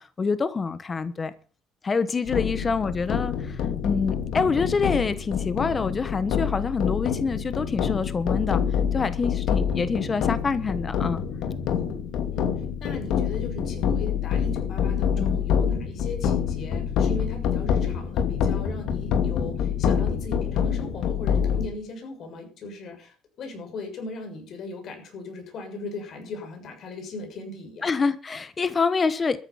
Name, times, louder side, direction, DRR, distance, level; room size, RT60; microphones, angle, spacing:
voice 1, 0.0-1.3 1.8-8.6 8.9-11.2 15.2-15.4 27.8-29.4, left 4 dB, 25° left, 1.2 m, -26 dB
sound 1, 2.3-21.7, left 8 dB, 70° left, 2.5 m, -26 dB
voice 2, 12.8-27.9, left 2 dB, 55° left, 6.7 m, -38 dB
13.5 x 10.0 x 7.1 m
cardioid pair, 120°, 0 cm